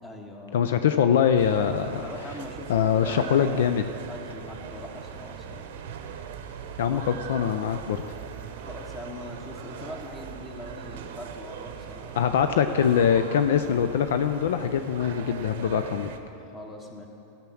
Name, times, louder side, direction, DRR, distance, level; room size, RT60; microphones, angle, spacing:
voice 1, 0.0-0.6 2.0-3.5 4.1-5.7 6.9-7.0 7.3-7.7 8.6-12.3 12.7-12.8 16.5-17.1, left 1 dB, 20° left, 2 dB, 1.5 m, -41 dB
voice 2, 0.5-2.1 2.7-3.9 6.8-8.0 12.2-16.1, left 8 dB, 70° left, 9 dB, 0.4 m, -23 dB
sound 1, 1.4-16.2, right 7 dB, 65° right, 0.7 m, -40 dB
13.5 x 5.8 x 6.2 m, 2.9 s
hypercardioid pair, 100°, 0 cm